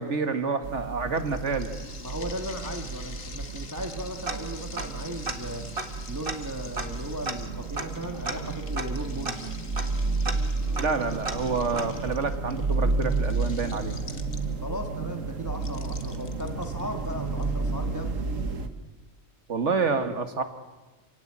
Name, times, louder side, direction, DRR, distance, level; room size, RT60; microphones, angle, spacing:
voice 1, 0.0-1.7 10.8-14.0 19.5-20.4, right 4 dB, 65° right, 9 dB, 2.0 m, -28 dB
sound 1, 0.6-18.7, right 3 dB, 80° right, 1.8 m, -32 dB
sound 2, 1.1-14.8 15.5-17.4, left 4 dB, 60° left, 1.8 m, -47 dB
voice 2, 2.0-5.7 6.1-9.5 14.6-18.1, equal, 15° right, 3 dB, 1.6 m, -36 dB
Tick-tock, 4.3-5.0 5.3-5.4 5.7-12.2, right 3 dB, 45° right, 1.9 m, -36 dB
27.5 x 17.5 x 8.8 m, 1.2 s
omnidirectional pair, 1.3 m